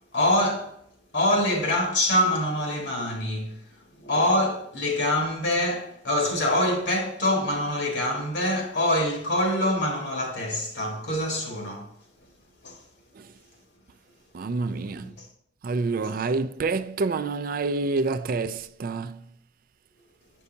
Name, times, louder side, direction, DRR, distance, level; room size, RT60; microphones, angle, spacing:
voice 1, 0.1-0.7 1.1-3.6 4.0-11.9 12.6-12.8 14.9-15.1 16.0-16.2, left 1 dB, 70° left, 1.8 m, -25 dB
voice 2, 14.3-15.1 15.6-19.2, right 3 dB, 55° right, 0.4 m, -27 dB
8.3 x 5.4 x 2.7 m
head